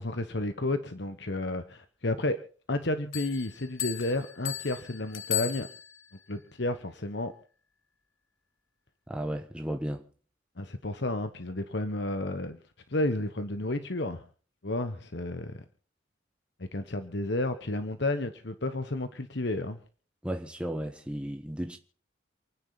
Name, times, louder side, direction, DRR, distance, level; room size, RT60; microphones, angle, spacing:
voice 1, 0.0-2.4 2.7-5.7 6.3-7.3 10.6-12.6 12.9-14.2 14.6-15.6 16.6-19.8, left 2 dB, 60° left, 1.2 m, -31 dB
Bell, 3.1-6.2, left 12 dB, 80° left, 1.5 m, -36 dB
voice 2, 9.1-10.0 20.2-21.8, equal, 5° right, 1.2 m, -34 dB
28.5 x 9.9 x 4.1 m
head